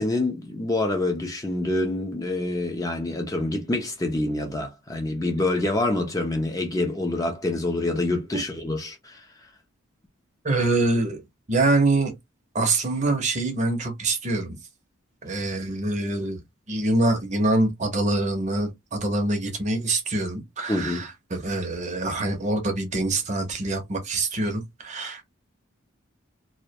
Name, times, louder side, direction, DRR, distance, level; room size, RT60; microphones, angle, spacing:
voice 1, 0.0-9.3 20.7-21.1, left 2 dB, 15° left, 0.4 m, -26 dB
voice 2, 10.4-11.2 11.5-12.1 12.5-14.6 15.2-16.4 16.7-25.2, right 2 dB, 35° right, 0.6 m, -25 dB
2.2 x 2.1 x 2.7 m
head